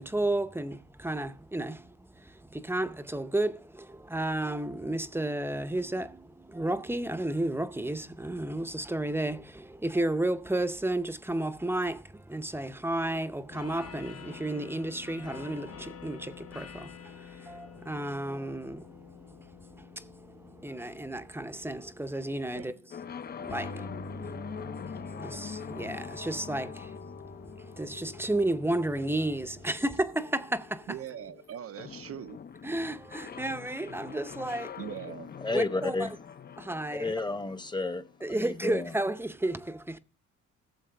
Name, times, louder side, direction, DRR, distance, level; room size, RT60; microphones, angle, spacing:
voice 1, 0.0-22.7 23.4-31.0 32.6-34.8 35.5-36.1 36.6-37.1 38.2-40.0, right 1 dB, 10° right, 0.7 m, -33 dB
sound 1, 13.5-30.8, left 8 dB, 55° left, 0.8 m, -51 dB
sound 2, 22.9-38.7, left 7 dB, 35° left, 0.5 m, -44 dB
Bass guitar, 23.5-29.7, equal, 70° left, 1.8 m, -46 dB
voice 2, 30.9-32.4 34.8-35.3, right 10 dB, 50° right, 0.4 m, -41 dB
voice 3, 35.4-36.1 36.9-38.0 38.3-38.9, left 3 dB, 15° left, 0.9 m, -31 dB
16.5 x 7.2 x 3.4 m
cardioid pair, 90°, 30 cm